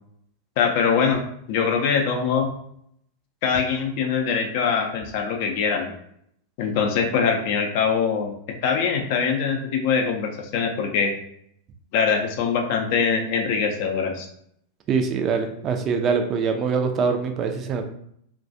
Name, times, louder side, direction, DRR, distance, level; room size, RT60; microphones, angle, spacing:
voice 1, 0.6-1.2 1.5-2.5 3.4-5.8 6.6-8.4 8.6-11.1 11.9-14.3, left 6 dB, 45° left, 2 dB, 0.4 m, -23 dB
voice 2, 14.9-17.8, right 5 dB, 30° right, 5 dB, 0.3 m, -23 dB
2.3 x 2.2 x 2.6 m, 0.69 s
figure-of-eight pair, 90°, 0 cm